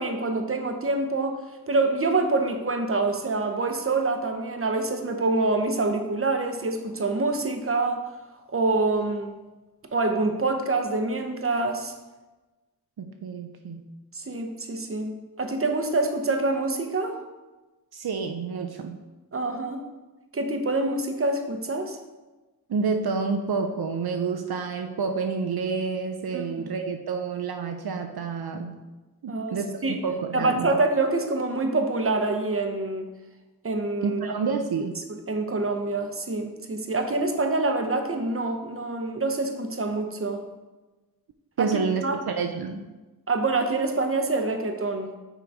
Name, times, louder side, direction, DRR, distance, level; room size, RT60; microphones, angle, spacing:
voice 1, 0.0-1.4 1.7-8.0 8.5-9.4 9.9-11.9 14.1-17.2 19.3-19.8 20.3-22.0 26.3-26.4 29.3-30.0 30.3-33.1 33.6-34.2 35.1-40.4 41.6-41.7 42.0-42.2 43.3-45.1, right 3 dB, 35° right, 5 dB, 0.7 m, -26 dB
voice 2, 13.0-13.9 17.9-19.0 22.7-28.8 29.2-30.8 34.0-35.0 41.6-42.8, right 5 dB, 75° right, 5 dB, 0.5 m, -29 dB
6.1 x 3.8 x 4.7 m, 1.2 s
wide cardioid pair, 50°, 38 cm